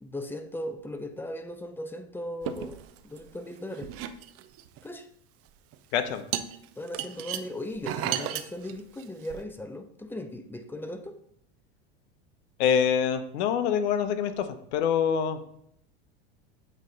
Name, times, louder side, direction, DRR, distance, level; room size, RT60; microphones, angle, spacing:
voice 1, 0.0-3.9 4.8-5.1 6.8-11.2, left 1 dB, 5° left, 8 dB, 0.5 m, -38 dB
sound 1, 2.4-3.4 3.7-4.8 5.6-5.7 6.3-9.4, right 11 dB, 45° right, 0.6 m, -34 dB
voice 2, 5.9-6.2 12.6-15.4, left 7 dB, 80° left, 10 dB, 0.9 m, -25 dB
8.1 x 3.3 x 5.3 m, 0.70 s
supercardioid pair, 115°, 33 cm